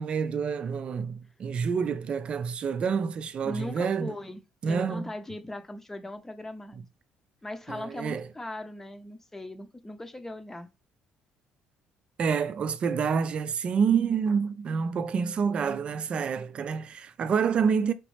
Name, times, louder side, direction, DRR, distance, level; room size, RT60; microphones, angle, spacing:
voice 1, 0.0-4.2 4.6-5.0 6.7-6.8 7.7-8.2 12.2-17.9, right 6 dB, 45° right, 0.5 m, -28 dB
voice 2, 3.4-6.8 7.4-10.7, left 1 dB, 15° left, 0.8 m, -39 dB
5.0 x 3.0 x 3.2 m
cardioid pair, 95°, 3 cm